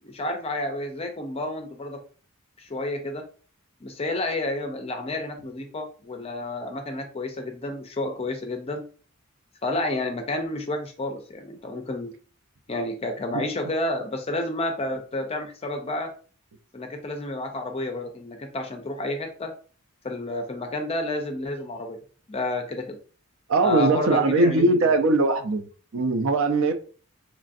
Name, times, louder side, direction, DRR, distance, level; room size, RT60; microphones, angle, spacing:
voice 1, 0.0-2.0 2.6-3.2 3.8-8.8 9.6-12.1 12.7-16.1 16.7-19.5 20.0-22.0 22.3-23.0 23.6-25.0, left 2 dB, 30° left, 0.4 m, -30 dB
voice 2, 23.5-25.7 25.9-26.7, right 3 dB, 65° right, 0.4 m, -21 dB
3.0 x 2.5 x 2.5 m
head